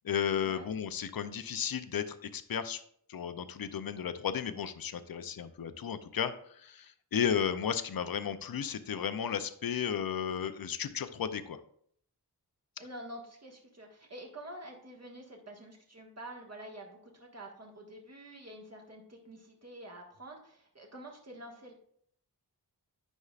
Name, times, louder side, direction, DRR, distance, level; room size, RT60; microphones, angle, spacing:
voice 1, 0.0-2.8 3.1-11.6, left 8 dB, 60° left, 11 dB, 0.6 m, -34 dB
voice 2, 12.8-21.7, right 1 dB, 40° right, 0 dB, 1.6 m, -48 dB
9.7 x 5.4 x 2.4 m, 0.65 s
wide cardioid pair, 55°, 40 cm